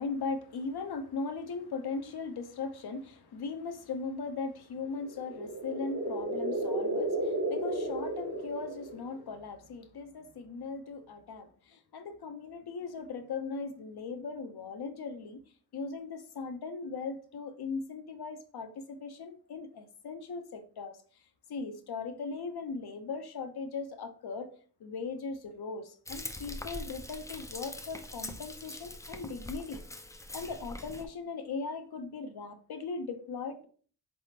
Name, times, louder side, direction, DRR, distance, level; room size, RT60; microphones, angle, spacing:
voice 1, 0.0-15.4 15.7-21.2 21.5-24.5 24.8-29.8 30.3-33.7, left 4 dB, 70° left, 0.7 m, -39 dB
sound 1, 5.0-9.2, right 1 dB, 40° right, 0.8 m, -33 dB
Frying (food), 26.1-31.1, left 1 dB, 10° left, 0.3 m, -43 dB
4.0 x 3.5 x 2.7 m
wide cardioid pair, 100°, 40 cm